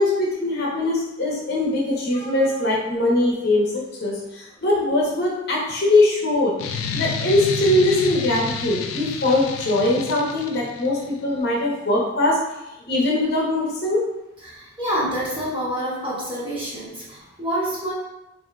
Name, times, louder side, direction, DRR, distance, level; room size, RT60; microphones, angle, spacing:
voice 1, 0.0-6.5 6.9-12.4 12.9-14.0, left 2 dB, 55° left, -4 dB, 0.7 m, -21 dB
sound 1, 6.6-11.0, left 5 dB, 90° left, 0.3 m, -30 dB
voice 2, 14.4-17.9, equal, 25° right, -8 dB, 1.0 m, -27 dB
3.5 x 2.6 x 2.3 m, 0.94 s
head